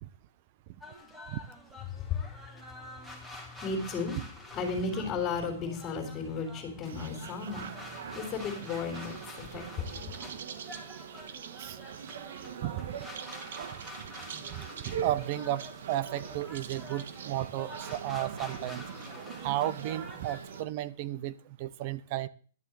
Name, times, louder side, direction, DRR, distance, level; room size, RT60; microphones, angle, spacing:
sound 1, 0.8-20.6, left 1 dB, 5° right, 2.4 m, -48 dB
voice 1, 1.9-4.2 4.5-10.0, left 4 dB, 25° left, 1 dB, 3.3 m, -35 dB
sound 2, 6.9-20.6, right 7 dB, 65° right, 1.3 m, -42 dB
voice 2, 12.6-13.0 14.5-18.8 19.4-22.3, right 13 dB, 40° right, 16 dB, 0.7 m, -34 dB
11.5 x 6.8 x 7.7 m, 0.42 s
hypercardioid pair, 160°, 0 cm